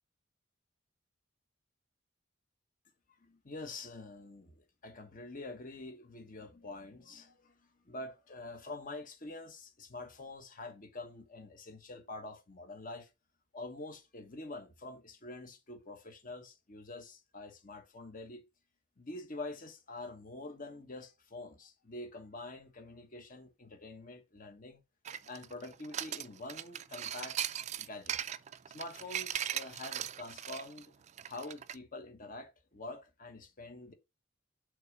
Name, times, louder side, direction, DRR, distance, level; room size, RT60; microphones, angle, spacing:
voice 1, 3.2-7.5 7.8-13.1 13.5-18.4 19.0-24.8 25.3-27.4 27.8-28.2 28.7-30.9 31.3-33.9, left 2 dB, 45° left, 1.2 m, -46 dB
sound 1, 25.0-31.7, right 10 dB, 35° right, 0.3 m, -39 dB
6.5 x 3.6 x 5.3 m
head